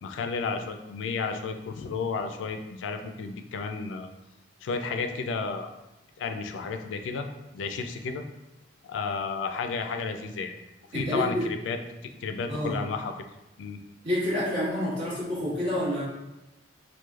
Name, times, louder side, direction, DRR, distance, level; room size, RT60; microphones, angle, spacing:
voice 1, 0.0-4.1 4.6-5.7 6.2-7.3 7.5-8.2 8.9-10.5 10.9-11.8 12.2-13.1 13.6-13.8, left 4 dB, 80° left, 6 dB, 0.3 m, -32 dB
voice 2, 10.9-11.5 12.5-12.8 14.0-16.0, equal, 65° right, -13 dB, 1.2 m, -28 dB
3.1 x 2.1 x 2.3 m, 0.96 s
head